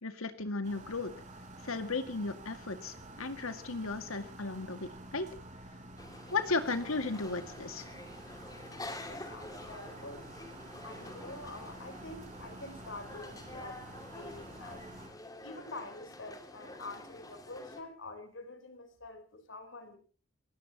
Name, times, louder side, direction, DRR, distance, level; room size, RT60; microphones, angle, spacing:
voice 1, 0.0-1.1 1.6-5.3 6.3-7.9, left 3 dB, 85° left, 9 dB, 2.0 m, -35 dB
sound 1, 0.6-15.1, right 1 dB, 35° right, 4.6 m, -49 dB
sound 2, 6.0-17.8, left 2 dB, 15° left, 2.4 m, -48 dB
voice 2, 8.7-20.0, left 2 dB, 60° left, 8 dB, 3.8 m, -47 dB
29.5 x 17.0 x 2.9 m, 0.38 s
head